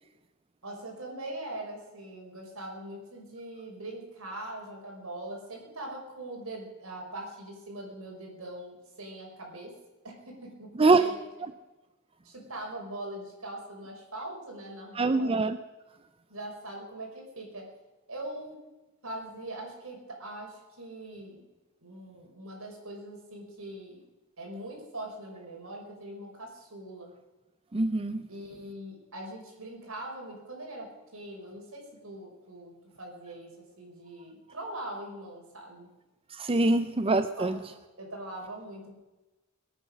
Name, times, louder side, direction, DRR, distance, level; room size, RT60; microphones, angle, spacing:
voice 1, 0.6-9.7 10.0-11.2 12.2-15.3 16.3-17.7 18.1-18.6 19.0-21.4 21.8-24.0 24.4-27.1 28.3-32.7 33.0-33.5 33.8-35.9 36.7-36.8 37.4-38.9, right 1 dB, 75° right, 0 dB, 5.4 m, -42 dB
voice 2, 10.8-11.1 14.9-15.6 27.7-28.3 36.3-37.6, right 3 dB, 25° right, 10 dB, 0.5 m, -24 dB
22.0 x 9.1 x 6.3 m, 1.1 s
head